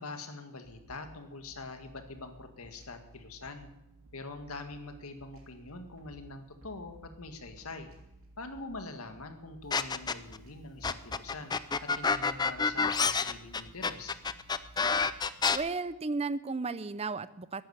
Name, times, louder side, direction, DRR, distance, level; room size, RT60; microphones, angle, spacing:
voice 1, 0.0-3.7 4.1-7.9 8.4-11.6 11.8-14.1, left 3 dB, 85° left, 7 dB, 1.9 m, -44 dB
sound 1, 0.6-15.7, right 1 dB, 70° right, 3.3 m, -57 dB
sound 2, 9.7-10.4 10.8-15.6, left 5 dB, 20° left, 0.5 m, -28 dB
voice 2, 15.5-17.6, right 3 dB, 30° right, 15 dB, 0.6 m, -34 dB
14.0 x 11.0 x 8.8 m, 0.90 s
head